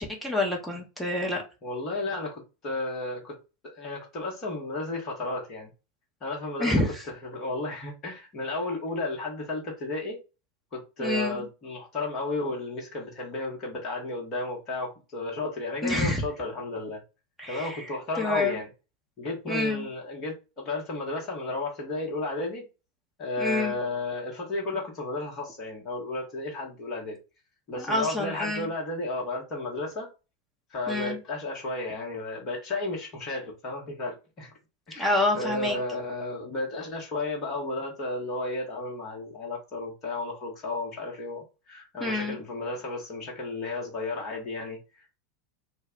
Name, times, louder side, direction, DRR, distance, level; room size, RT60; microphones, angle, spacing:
voice 1, 0.0-1.4 6.6-7.0 11.0-11.4 15.8-16.2 17.4-18.6 19.5-19.9 23.4-23.8 27.8-28.7 30.9-31.2 35.0-35.8 42.0-42.4, left 2 dB, 5° left, 0.9 m, -28 dB
voice 2, 1.6-3.4 3.6-5.7 6.2-6.7 7.3-10.2 10.7-17.0 17.5-18.7 19.2-22.6 23.2-27.2 27.7-30.1 30.7-34.5 34.9-45.1, left 2 dB, 40° left, 1.0 m, -33 dB
2.2 x 2.1 x 3.6 m
figure-of-eight pair, 85°, 0 cm